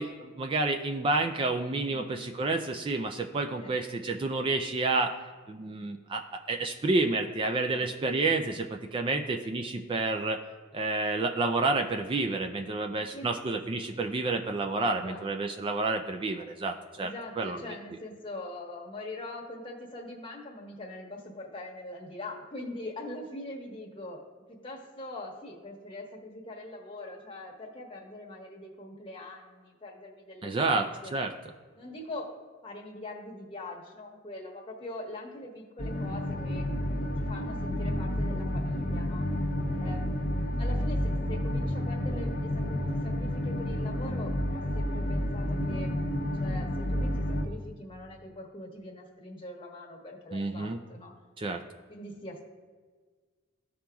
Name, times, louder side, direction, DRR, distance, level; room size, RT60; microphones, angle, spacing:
voice 1, 0.0-5.2 5.5-10.4 10.7-17.6 30.4-31.3 50.3-50.8 51.4-51.6, right 3 dB, 25° right, 5 dB, 0.3 m, -29 dB
voice 2, 1.8-2.2 3.5-3.7 7.7-7.9 13.1-13.3 14.8-15.3 17.0-24.2 24.5-31.1 31.7-32.4 32.6-36.6 37.0-39.2 39.7-45.9 46.4-51.1 51.9-52.4, left 2 dB, 25° left, 0 dB, 1.2 m, -43 dB
sound 1, 35.8-47.4, left 1 dB, 50° left, 0.8 m, -30 dB
14.5 x 4.9 x 2.3 m, 1.5 s
head